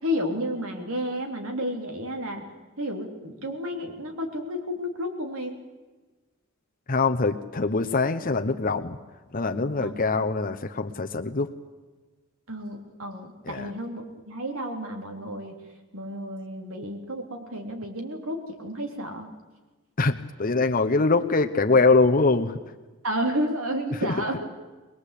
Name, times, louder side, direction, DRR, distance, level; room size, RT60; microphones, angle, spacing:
voice 1, 0.0-2.4 2.8-5.6 9.8-9.9 12.5-15.6 15.9-19.3 23.0-24.5, equal, 80° right, 4 dB, 3.5 m, -31 dB
voice 2, 6.9-9.0 9.3-11.5 13.5-13.7 20.0-22.6 24.0-24.1, left 3 dB, 40° left, 7 dB, 0.9 m, -23 dB
22.5 x 21.5 x 8.5 m, 1.2 s
head